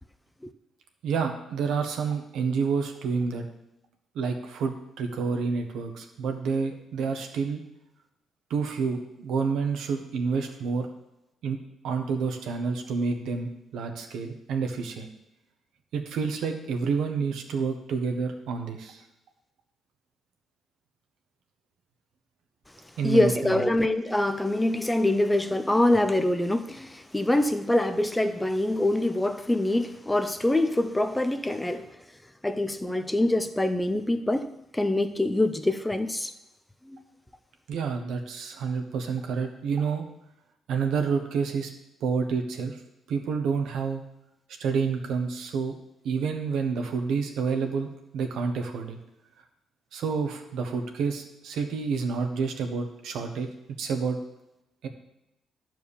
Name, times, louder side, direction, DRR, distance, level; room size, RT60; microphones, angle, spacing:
voice 1, 1.0-3.5 4.1-7.6 8.5-10.9 11.4-11.6 11.8-15.1 15.9-19.0 23.0-23.6 37.7-40.0 40.7-41.7 42.0-42.8 43.1-44.0 44.6-45.7 46.0-47.9 48.1-49.0 49.9-53.5 53.8-54.2 54.8-54.9, right 5 dB, 80° right, 1.3 m, -29 dB
voice 2, 23.0-31.9 32.4-36.3 36.9-37.0, left 1 dB, 10° left, 0.6 m, -25 dB
11.0 x 4.7 x 7.1 m
cardioid pair, 90°, 0 cm